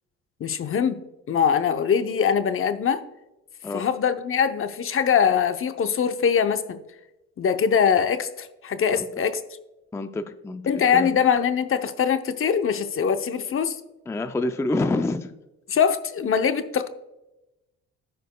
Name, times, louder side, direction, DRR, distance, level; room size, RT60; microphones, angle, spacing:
voice 1, 0.4-1.0 1.3-3.0 3.7-6.8 7.4-9.4 10.7-13.8 15.7-16.9, left 7 dB, 45° left, 9 dB, 0.7 m, -22 dB
voice 2, 9.9-11.2 14.1-15.3, left 2 dB, 10° left, 9 dB, 0.4 m, -27 dB
13.5 x 5.1 x 2.2 m, 0.96 s
cardioid pair, 90°, 30 cm